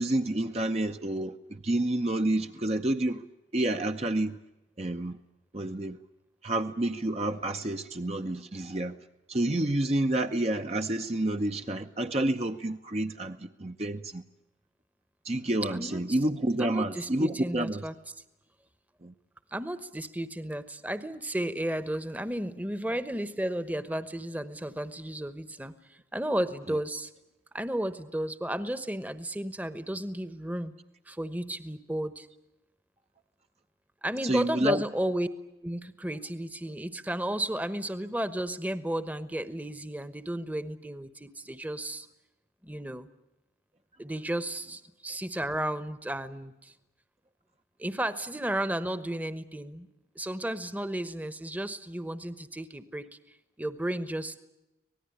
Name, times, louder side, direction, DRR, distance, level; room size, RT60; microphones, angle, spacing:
voice 1, 0.0-3.2 3.5-4.4 4.8-5.2 5.5-6.0 6.4-9.0 9.3-14.2 15.2-17.8 19.0-19.1 34.2-34.8, right 1 dB, 35° right, 0.8 m, -29 dB
voice 2, 15.7-16.0 16.6-17.9 19.5-27.1 27.5-30.7 31.1-32.3 34.0-35.3 35.6-42.1 42.6-43.1 44.0-46.7 47.8-49.9 50.1-53.1 53.6-54.4, right 1 dB, 10° right, 1.1 m, -33 dB
25.5 x 19.0 x 9.9 m
head